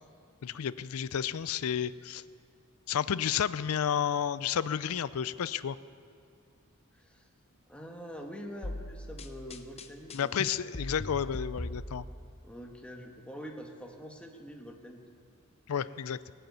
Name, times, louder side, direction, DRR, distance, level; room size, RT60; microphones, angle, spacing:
voice 1, 0.4-2.2 2.9-5.8 10.1-12.1 15.7-16.2, left 8 dB, 85° left, 16 dB, 0.5 m, -31 dB
voice 2, 6.9-7.2 7.7-10.3 12.4-15.0, equal, 5° left, 2 dB, 1.3 m, -45 dB
sound 1, 8.6-12.3, left 1 dB, 30° left, 0.8 m, -40 dB
18.0 x 8.1 x 9.3 m, 2.4 s
head